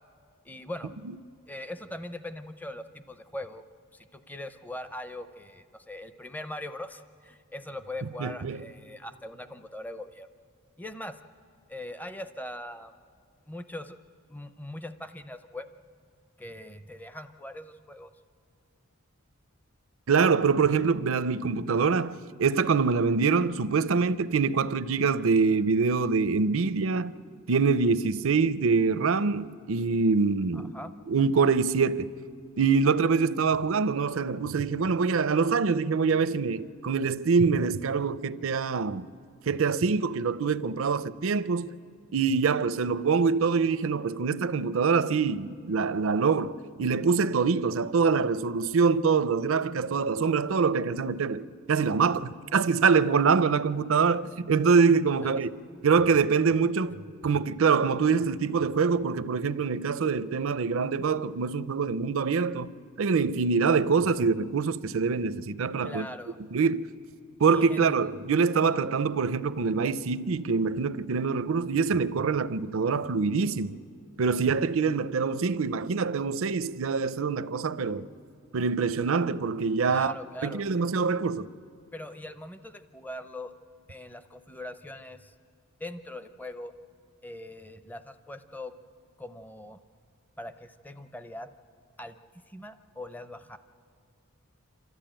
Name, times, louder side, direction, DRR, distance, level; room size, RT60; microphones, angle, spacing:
voice 1, 0.4-0.9 1.5-3.6 3.9-10.3 10.8-11.2 11.7-12.9 13.4-14.0 14.3-15.7 16.4-18.1 30.5-30.9 55.2-55.4 65.8-66.4 67.5-68.1 79.9-80.6 81.9-83.5 83.9-85.3 85.8-86.7 87.2-88.8 89.2-89.8 90.4-91.5 92.0-92.2 92.5-93.6, left 1 dB, 10° left, 0.5 m, -41 dB
voice 2, 8.2-8.6 20.1-27.1 27.5-30.7 31.1-32.1 32.6-39.1 39.5-41.8 42.1-55.5 55.8-62.7 63.0-66.1 66.5-66.9 67.4-73.8 74.2-78.1 78.5-80.1 80.4-81.5, right 5 dB, 70° right, 0.5 m, -25 dB
27.5 x 13.5 x 8.9 m
head